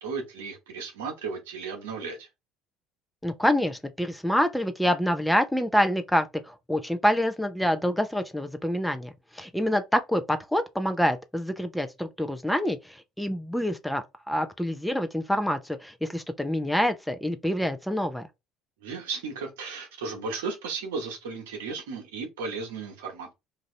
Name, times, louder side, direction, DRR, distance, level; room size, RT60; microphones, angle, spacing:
voice 1, 0.0-2.3 18.8-23.3, right 4 dB, 85° right, 1.0 m, -35 dB
voice 2, 3.2-18.3, equal, 5° left, 0.6 m, -26 dB
2.7 x 2.6 x 3.2 m
hypercardioid pair, 70°, 0 cm